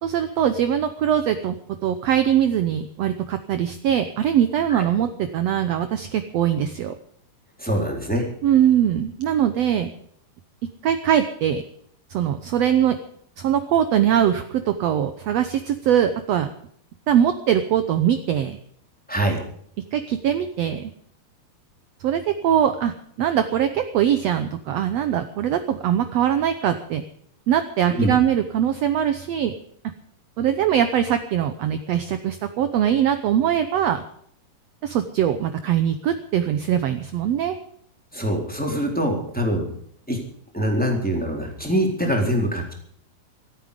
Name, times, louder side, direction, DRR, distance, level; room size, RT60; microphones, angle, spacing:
voice 1, 0.0-1.5 1.8-6.9 8.4-9.9 10.8-11.6 12.1-13.0 13.4-16.5 17.1-18.6 19.9-20.9 22.0-27.0 27.5-29.5 30.4-34.0 34.8-37.6, right 9 dB, 70° right, 9 dB, 1.6 m, -22 dB
voice 2, 7.6-8.3 19.1-19.4 27.9-28.2 38.1-39.7 40.1-40.2 40.5-42.7, equal, ahead, 0 dB, 3.6 m, -23 dB
26.5 x 9.1 x 5.1 m, 0.66 s
omnidirectional pair, 3.9 m